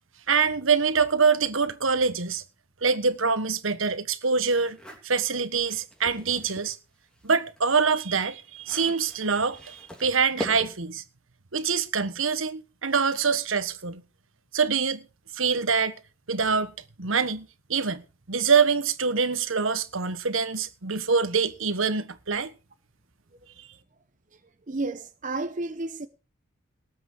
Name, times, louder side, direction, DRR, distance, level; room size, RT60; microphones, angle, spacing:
voice 1, 0.3-2.4 2.8-4.8 5.0-6.8 7.2-11.0 11.5-14.0 14.5-15.0 15.3-16.0 16.3-16.7 17.0-18.0 18.3-22.5, right 5 dB, 75° right, 1.4 m, -25 dB
sound 1, 4.5-6.7 7.1-10.9, equal, 5° left, 3.2 m, -42 dB
voice 2, 24.7-26.1, right 2 dB, 40° right, 0.9 m, -31 dB
19.0 x 8.1 x 4.8 m
head